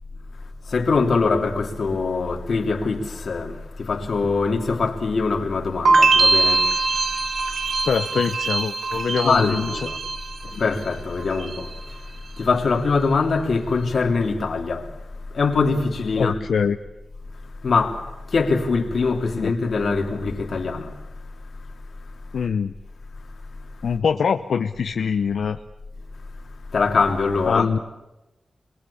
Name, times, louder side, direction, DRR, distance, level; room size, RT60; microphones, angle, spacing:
voice 1, 0.7-3.5 3.8-6.6 9.2-10.0 10.6-11.7 12.4-14.8 15.3-16.4 17.6-18.0 18.3-20.9 26.7-27.7, left 4 dB, 55° left, 3.2 m, -22 dB
sound 1, 5.9-10.9 11.2-11.8, right 3 dB, 65° right, 1.8 m, -22 dB
voice 2, 7.8-9.7 10.5-10.6 16.2-16.8 19.3-19.5 22.3-22.7 23.8-25.6 27.5-27.8, left 6 dB, 80° left, 0.9 m, -23 dB
28.5 x 22.0 x 8.6 m
wide cardioid pair, 145°, 0 cm